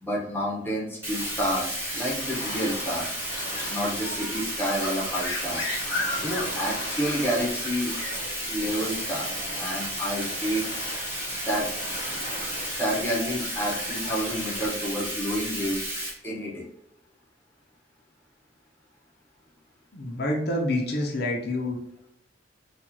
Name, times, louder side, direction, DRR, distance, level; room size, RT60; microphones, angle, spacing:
voice 1, 0.0-3.2 3.6-5.6 6.2-7.9 8.4-10.6 11.3-11.7 12.8-15.8 16.2-16.7, equal, 10° left, -3 dB, 0.9 m, -29 dB
Bathtub (filling or washing), 1.0-16.1, right 1 dB, 15° right, 1.1 m, -33 dB
sound 1, 1.1-14.7, left 1 dB, 85° left, 1.0 m, -37 dB
voice 2, 19.9-21.8, left 1 dB, 60° left, 0 dB, 0.6 m, -27 dB
4.5 x 2.4 x 2.8 m, 0.74 s
head